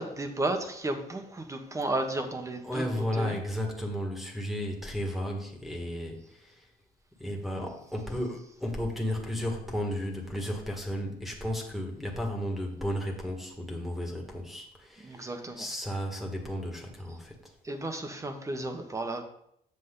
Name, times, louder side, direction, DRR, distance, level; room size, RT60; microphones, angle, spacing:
voice 1, 0.0-2.8 3.1-3.4 15.0-15.7 17.6-19.2, right 2 dB, 20° right, 6 dB, 1.2 m, -33 dB
voice 2, 2.6-6.7 7.2-17.3, equal, ahead, 1 dB, 1.7 m, -34 dB
8.0 x 7.3 x 3.8 m, 0.72 s
cardioid pair, 110°, 17 cm